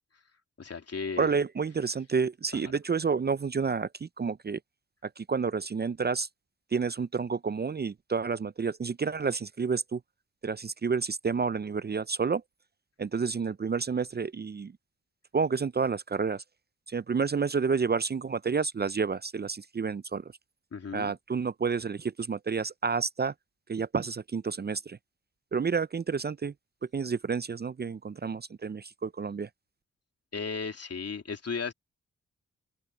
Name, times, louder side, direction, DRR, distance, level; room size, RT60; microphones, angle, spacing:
voice 1, 0.6-1.3 2.5-2.7 20.7-21.2 30.3-31.7, left 5 dB, 55° left, 3.2 m, -35 dB
voice 2, 1.2-4.6 5.2-6.3 6.7-10.0 10.4-12.4 13.0-14.7 15.3-16.4 16.9-20.3 20.9-23.3 23.7-25.0 25.5-26.5 26.9-29.5, right 5 dB, 35° right, 0.6 m, -30 dB
open air
supercardioid pair, 40°, 29 cm